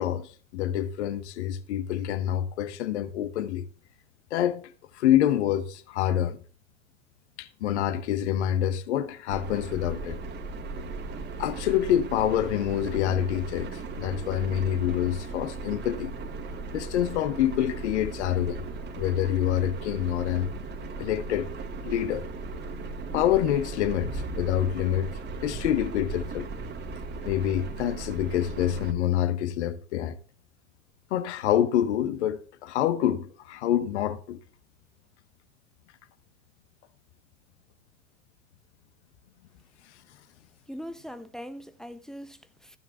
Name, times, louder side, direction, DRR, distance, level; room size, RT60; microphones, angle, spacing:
voice 1, 0.0-3.6 4.3-4.6 4.9-6.4 7.4-10.2 11.4-16.1 16.7-18.6 18.9-20.5 21.0-21.5 21.8-22.2 23.1-25.1 25.4-26.5 27.2-30.2 31.1-34.4, left 11 dB, 55° left, 1.2 m, -26 dB
sound 1, 9.3-28.9, right 3 dB, 25° right, 1.8 m, -37 dB
voice 2, 40.7-42.8, equal, ahead, 0.5 m, -41 dB
14.5 x 9.5 x 2.3 m
figure-of-eight pair, 85°, 42 cm